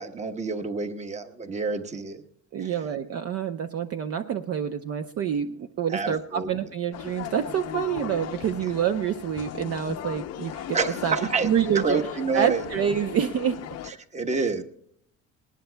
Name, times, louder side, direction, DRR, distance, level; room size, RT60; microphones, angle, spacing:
voice 1, 0.0-2.2 2.6-2.7 5.9-6.5 10.7-11.5 11.7-12.6 13.8-14.6, right 4 dB, 20° right, 8 dB, 1.1 m, -28 dB
voice 2, 2.5-10.8 11.0-12.0 12.3-13.6, right 9 dB, 45° right, 7 dB, 0.7 m, -27 dB
sound 1, 6.9-13.9, left 10 dB, 50° left, 0.7 m, -37 dB
20.5 x 19.5 x 2.2 m, 0.69 s
cardioid pair, 140°, 34 cm